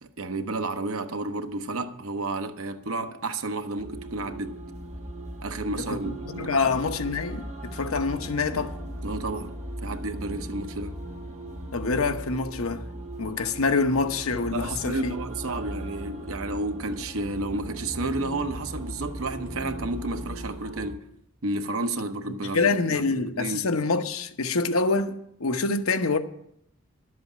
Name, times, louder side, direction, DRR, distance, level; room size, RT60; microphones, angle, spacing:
voice 1, 0.0-4.6 5.4-6.6 9.0-9.6 9.8-11.0 14.5-21.1 21.4-23.7, right 2 dB, 70° right, 1.0 m, -31 dB
sound 1, 3.8-20.9, right 1 dB, 30° right, 1.7 m, -38 dB
voice 2, 5.8-8.8 11.7-12.8 13.2-15.2 22.5-26.2, left 4 dB, 75° left, 1.0 m, -26 dB
11.5 x 7.9 x 7.6 m
head